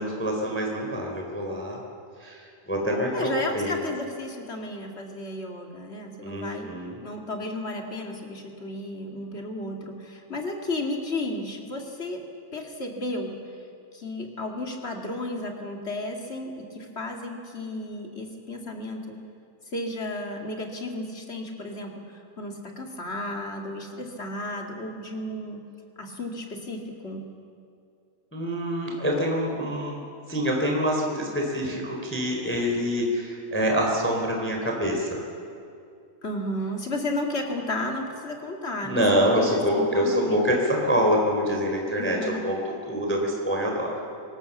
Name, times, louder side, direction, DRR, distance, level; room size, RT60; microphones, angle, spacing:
voice 1, 0.0-1.8 2.2-3.9 6.2-7.0 28.3-30.0 30.3-35.2 38.8-43.9, equal, 5° left, 0 dB, 3.3 m, -26 dB
voice 2, 3.1-6.7 7.0-12.2 12.5-13.4 13.9-19.2 19.7-22.0 22.4-25.6 26.0-27.2 36.2-40.5 42.0-42.4, left 1 dB, 25° left, 2 dB, 2.0 m, -33 dB
25.5 x 18.0 x 7.3 m, 2.5 s
omnidirectional pair, 3.6 m